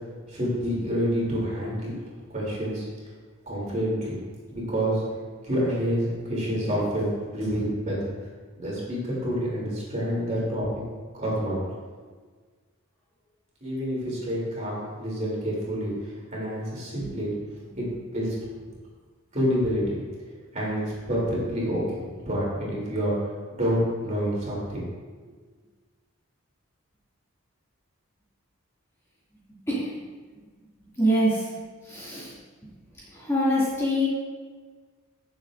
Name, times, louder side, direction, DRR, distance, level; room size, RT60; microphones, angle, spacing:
voice 1, 0.3-1.9 2.3-2.9 3.5-4.1 4.5-5.0 5.4-8.1 8.6-10.8 11.2-11.6 13.6-17.3 17.8-18.3 19.3-20.1 20.5-23.1 23.5-24.8, equal, 35° right, -6 dB, 3.1 m, -28 dB
voice 2, 31.0-31.4 31.9-32.3 33.1-34.1, equal, 10° left, -9 dB, 2.4 m, -24 dB
16.0 x 7.2 x 2.6 m, 1.5 s
head